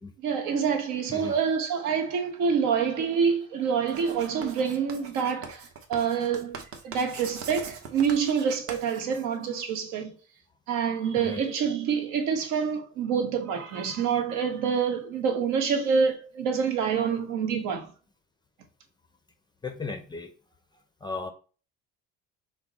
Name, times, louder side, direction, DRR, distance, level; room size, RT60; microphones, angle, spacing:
voice 1, 0.2-10.1 10.7-17.9, right 6 dB, 75° right, 1.2 m, -27 dB
Writing, 3.9-9.7, right 5 dB, 45° right, 0.9 m, -42 dB
voice 2, 19.6-20.3 21.0-21.3, left 4 dB, 15° left, 0.5 m, -35 dB
5.8 x 2.1 x 4.0 m
cardioid pair, 150°, 31 cm